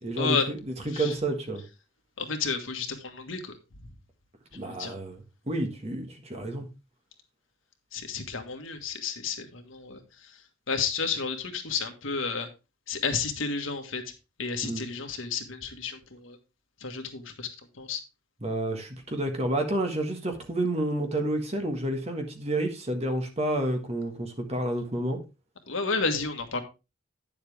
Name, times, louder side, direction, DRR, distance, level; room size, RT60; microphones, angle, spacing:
voice 1, 0.0-1.6 4.5-6.7 14.6-14.8 18.4-25.2, right 1 dB, 30° right, 1.6 m, -30 dB
voice 2, 2.2-3.5 4.6-4.9 7.9-10.0 10.7-12.5 12.9-14.0 14.4-16.4 16.8-17.5 17.8-18.0 25.7-26.6, left 5 dB, 85° left, 1.6 m, -31 dB
9.7 x 7.1 x 3.4 m
head